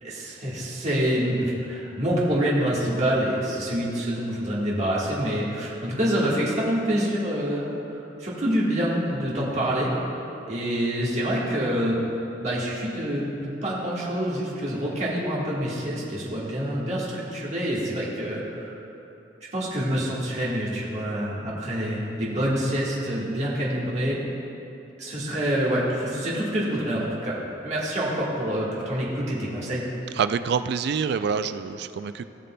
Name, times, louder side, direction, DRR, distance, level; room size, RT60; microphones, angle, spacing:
voice 1, 0.0-9.9 10.5-12.0 12.4-18.7 19.5-24.2 25.0-27.3 27.6-29.8, equal, 40° right, -6 dB, 1.5 m, -26 dB
voice 2, 30.1-32.3, right 6 dB, 65° right, 11 dB, 0.3 m, -26 dB
16.5 x 6.7 x 2.2 m, 2.9 s
head